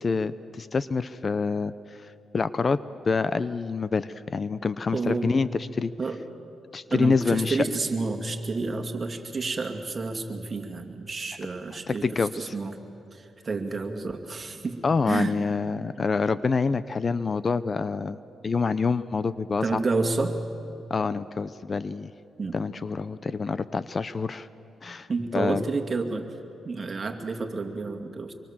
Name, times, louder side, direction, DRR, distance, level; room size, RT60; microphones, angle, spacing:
voice 1, 0.0-2.0 2.3-2.8 3.1-5.9 6.7-7.6 11.9-12.5 14.8-18.2 18.4-19.8 20.9-22.1 22.5-24.5 24.8-25.1 25.3-25.6, left 4 dB, 40° left, 15 dB, 0.6 m, -26 dB
voice 2, 4.9-5.4 6.0-6.2 6.9-12.8 13.1-15.4 19.6-20.4 22.4-22.6 25.1-26.3 26.6-28.3, right 3 dB, 35° right, 4 dB, 2.3 m, -30 dB
25.5 x 24.0 x 7.3 m, 2.7 s
cardioid pair, 90°, 0 cm